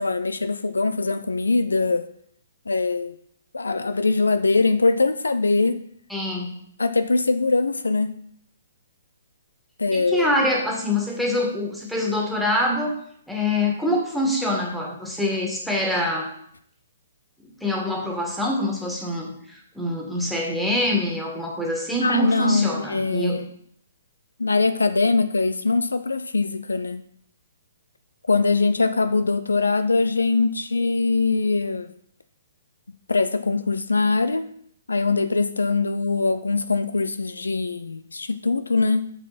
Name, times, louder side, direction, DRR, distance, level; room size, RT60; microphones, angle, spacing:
voice 1, 0.0-2.1 2.7-3.2 3.5-5.8 6.8-8.2 9.8-10.3 22.0-23.4 24.4-27.0 28.3-31.9 33.1-34.5 34.9-39.1, left 3 dB, 85° left, 11 dB, 0.5 m, -22 dB
voice 2, 6.1-6.6 9.9-12.9 13.3-16.3 17.6-23.4, left 1 dB, ahead, -1 dB, 1.8 m, -25 dB
7.1 x 6.3 x 4.1 m, 0.66 s
figure-of-eight pair, 130°, 0 cm